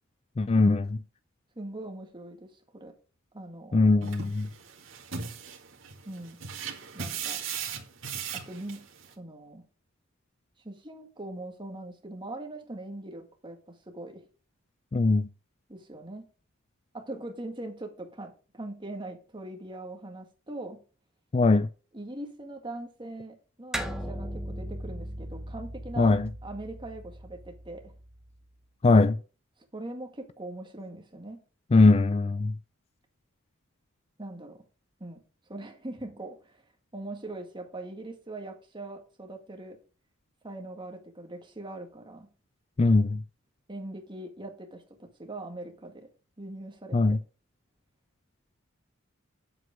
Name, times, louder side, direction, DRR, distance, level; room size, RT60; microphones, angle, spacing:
voice 1, 0.4-1.0 3.7-4.5 14.9-15.3 21.3-21.7 26.0-26.3 28.8-29.2 31.7-32.5 42.8-43.2 46.9-47.2, left 3 dB, 30° left, 0.4 m, -21 dB
voice 2, 1.6-2.5 2.7-2.9 3.3-3.9 6.1-6.4 6.9-7.4 8.3-9.6 10.6-14.3 15.7-16.3 16.9-20.8 21.9-27.9 29.7-31.4 34.2-34.6 35.0-35.2 35.5-36.6 36.9-39.8 40.4-42.3 43.7-46.1 46.4-47.2, right 2 dB, 25° right, 1.9 m, -41 dB
sound 1, 4.0-9.1, right 7 dB, 70° right, 2.0 m, -38 dB
sound 2, 23.7-28.5, equal, ahead, 1.0 m, -38 dB
8.0 x 7.7 x 5.1 m
head